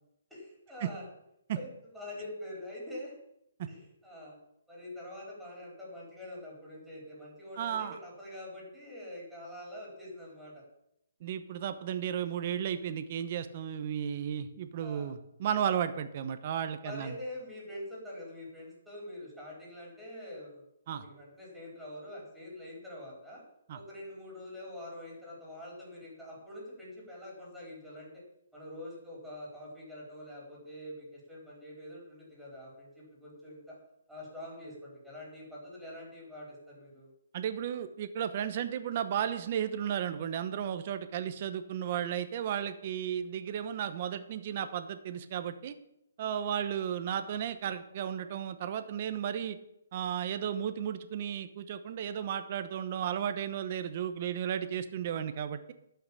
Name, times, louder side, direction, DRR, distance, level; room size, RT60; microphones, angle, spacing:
voice 1, 0.3-1.0 1.5-1.7 1.9-3.2 3.7-4.4 4.7-10.6 14.8-15.1 16.8-23.4 23.7-28.1 28.5-33.8 34.1-37.1, left 1 dB, ahead, -5 dB, 4.2 m, -45 dB
voice 2, 7.6-8.0 11.2-17.2 20.9-21.0 23.7-23.8 37.3-45.7 46.2-49.6 49.9-55.7, right 9 dB, 35° right, 10 dB, 0.9 m, -34 dB
12.0 x 5.8 x 8.5 m, 0.80 s
hypercardioid pair, 170°, 0 cm